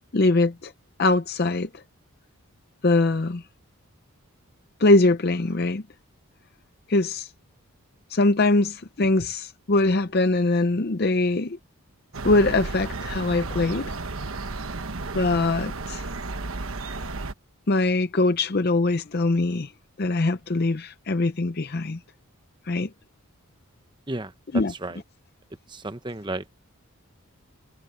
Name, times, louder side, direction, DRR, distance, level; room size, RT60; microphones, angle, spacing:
voice 1, 0.1-0.7 1.0-1.8 2.8-3.4 4.8-5.8 6.9-7.3 8.1-11.6 12.2-13.9 15.1-16.1 17.7-19.7 20.0-22.0 22.7-22.9 24.5-24.7, left 2 dB, 45° left, 0.6 m, -22 dB
sound 1, 12.1-17.3, right 3 dB, 65° right, 1.2 m, -33 dB
voice 2, 24.1-25.0 25.7-26.5, right 2 dB, 20° right, 0.8 m, -33 dB
head